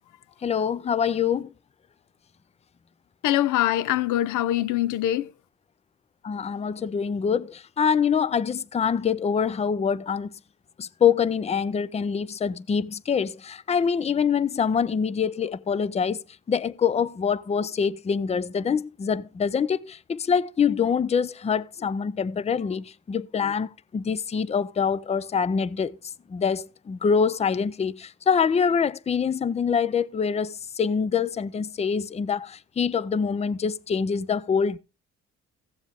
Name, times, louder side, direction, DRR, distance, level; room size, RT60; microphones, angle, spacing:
voice 1, 0.4-1.5 6.2-10.3 10.8-26.0 26.3-34.8, left 6 dB, 20° left, 0.4 m, -25 dB
voice 2, 3.2-5.3, left 13 dB, 85° left, 0.5 m, -23 dB
15.5 x 7.2 x 3.6 m
cardioid pair, 90°, 30 cm